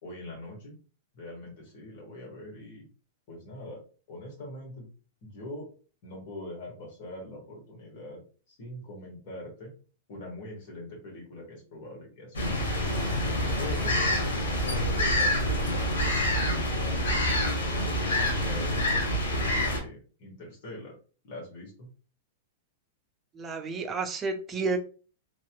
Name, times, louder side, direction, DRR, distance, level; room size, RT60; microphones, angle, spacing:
voice 1, 0.0-0.8 1.1-2.9 3.3-3.8 4.1-4.9 5.2-5.7 6.0-9.7 10.1-12.9 13.6-15.9 16.3-17.2 17.7-20.9 21.2-21.9, left 1 dB, 55° left, -2 dB, 1.4 m, -43 dB
sound 1, 12.3-19.8, left 1 dB, 75° left, 1.1 m, -27 dB
voice 2, 23.3-24.8, right 4 dB, 20° right, 4 dB, 0.5 m, -31 dB
2.9 x 2.8 x 2.3 m, 0.37 s
hypercardioid pair, 110°, 0 cm